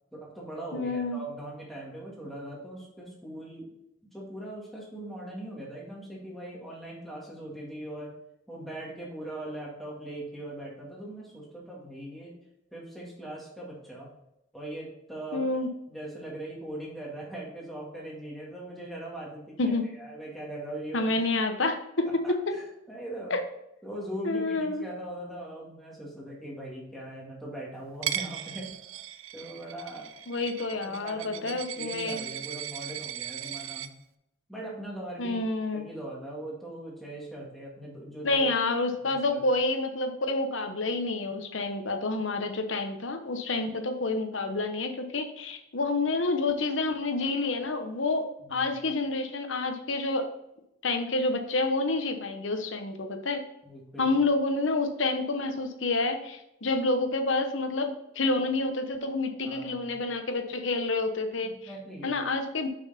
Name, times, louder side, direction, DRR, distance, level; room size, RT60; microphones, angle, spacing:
voice 1, 0.1-3.7 4.1-8.1 8.5-12.4 12.7-14.1 14.5-15.5 15.9-21.1 22.1-23.3 23.8-28.7 29.3-30.1 30.7-33.9 34.5-35.4 35.7-38.4 39.1-39.4 48.4-48.7 53.6-54.1 59.4-60.0 61.4-62.1, right 1 dB, ahead, -4 dB, 2.1 m, -40 dB
voice 2, 0.7-1.2 15.3-15.7 19.6-19.9 20.9-22.5 23.3-23.4 24.2-24.8 30.3-32.2 35.2-35.9 38.2-50.3 50.8-53.4 54.0-61.5 62.0-62.7, left 2 dB, 70° left, 7 dB, 1.0 m, -28 dB
Coin (dropping), 28.0-33.9, right 11 dB, 80° right, 0.5 m, -37 dB
6.6 x 5.6 x 4.2 m, 0.83 s
head